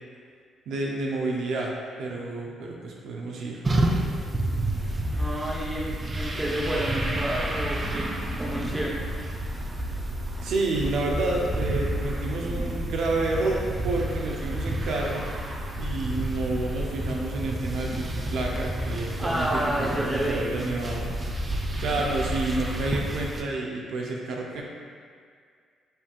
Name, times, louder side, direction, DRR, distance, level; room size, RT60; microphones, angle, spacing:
voice 1, 0.7-1.7 2.0-3.6 10.4-15.3 15.8-19.5 19.8-21.1 21.8-24.6, right 2 dB, 75° right, -1 dB, 0.5 m, -29 dB
sound 1, 3.6-23.4, right 1 dB, 25° right, 0.4 m, -30 dB
voice 2, 5.2-9.0 19.2-20.6, right 1 dB, 5° right, -5 dB, 0.9 m, -30 dB
5.3 x 3.5 x 2.4 m, 2.1 s
cardioid pair, 90°, 0 cm